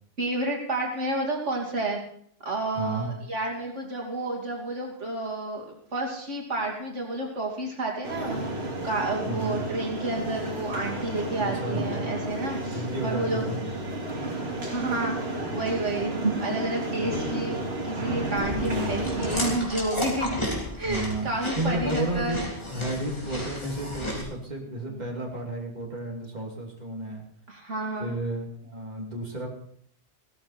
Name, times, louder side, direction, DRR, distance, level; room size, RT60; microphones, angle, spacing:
voice 1, 0.2-2.0 2.4-13.5 14.7-16.1 16.4-17.6 17.8-20.4 20.8-22.4 24.9-25.0 27.5-28.2, right 2 dB, 85° right, -1 dB, 3.0 m, -30 dB
voice 2, 2.8-3.1 9.2-9.6 11.4-12.2 12.6-14.0 15.9-16.4 18.5-19.0 20.8-21.3 21.6-27.2 28.0-29.5, right 1 dB, 35° right, -1 dB, 2.9 m, -32 dB
sound 1, 8.0-19.6, right 2 dB, 60° right, 2.9 m, -31 dB
Chewing mastication, 18.4-24.2, left 1 dB, 25° left, 3.4 m, -34 dB
16.5 x 14.0 x 4.3 m, 0.63 s
omnidirectional pair, 1.2 m